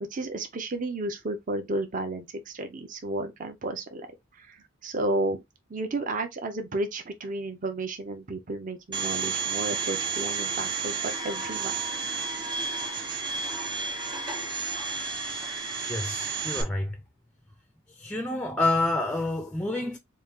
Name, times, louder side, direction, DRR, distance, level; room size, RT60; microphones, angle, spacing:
voice 1, 0.1-4.1 4.3-5.4 5.7-11.8 12.5-12.6, right 2 dB, 40° right, 0.7 m, -32 dB
Domestic sounds home sounds, 8.9-16.6, right 4 dB, 20° right, 1.2 m, -31 dB
voice 2, 15.7-17.0 17.9-20.0, left 2 dB, 5° left, 0.4 m, -28 dB
4.3 x 2.4 x 3.5 m
head